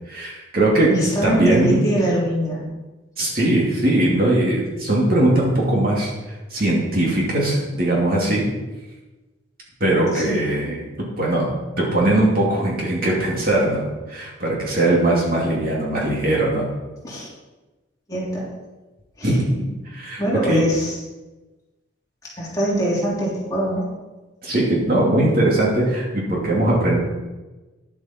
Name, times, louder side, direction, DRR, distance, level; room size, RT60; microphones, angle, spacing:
voice 1, 0.1-0.9 1.2-1.8 3.2-6.1 6.5-8.4 9.8-11.5 11.9-13.8 14.1-16.6 19.2-19.5 19.9-20.6 24.4-27.0, right 1 dB, 50° right, -4 dB, 2.6 m, -20 dB
voice 2, 0.9-2.6 10.1-10.4 17.0-17.3 18.1-18.5 19.2-19.3 20.2-21.0 22.2-23.9, right 1 dB, 20° left, -7 dB, 3.2 m, -23 dB
11.0 x 7.6 x 4.4 m, 1.2 s
head